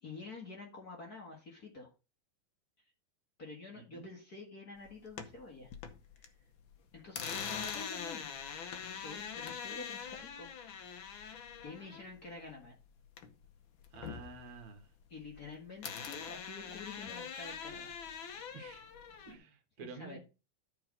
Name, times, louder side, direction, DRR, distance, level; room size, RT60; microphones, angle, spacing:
voice 1, 0.0-1.9 3.4-5.7 6.2-6.3 6.9-8.3 8.8-10.5 10.7-10.9 11.6-12.8 15.1-17.9 18.3-18.4 19.2-19.3 19.8-20.2, left 3 dB, 35° left, 2.0 m, -48 dB
voice 2, 3.7-4.1 13.9-14.9 18.5-18.8 19.3-20.2, right 4 dB, 70° right, 2.4 m, -50 dB
sound 1, 4.9-6.3 6.6-13.5 13.8-15.5 15.8-19.3, left 7 dB, 65° left, 1.2 m, -43 dB
11.0 x 4.8 x 5.2 m
omnidirectional pair, 3.4 m